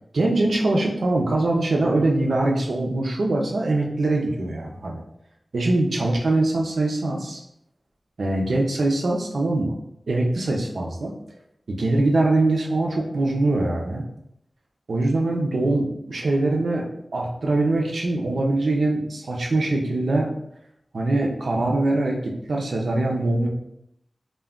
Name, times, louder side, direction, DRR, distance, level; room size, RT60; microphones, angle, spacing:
voice 1, 0.1-5.0 5.5-7.4 8.2-9.7 10.1-11.1 11.7-14.0 14.9-16.9 17.1-20.3 20.9-23.5, right 2 dB, 85° right, 0 dB, 0.5 m, -22 dB
2.2 x 2.2 x 3.5 m, 0.77 s
wide cardioid pair, 80°, 0 cm